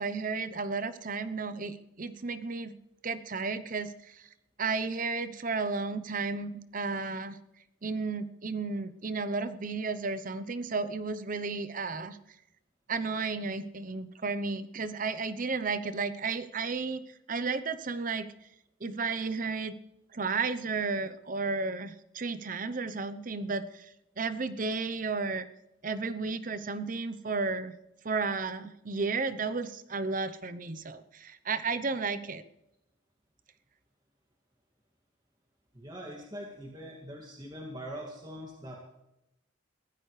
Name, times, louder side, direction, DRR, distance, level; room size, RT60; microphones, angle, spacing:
voice 1, 0.0-2.8 3.0-4.2 4.6-7.4 7.8-12.2 12.9-17.0 17.3-18.3 18.8-19.7 20.1-25.5 25.8-27.8 28.0-32.4, right 4 dB, 45° right, 12 dB, 0.8 m, -33 dB
voice 2, 35.7-38.7, equal, 20° right, -1 dB, 2.3 m, -42 dB
22.0 x 15.0 x 3.3 m, 0.88 s
head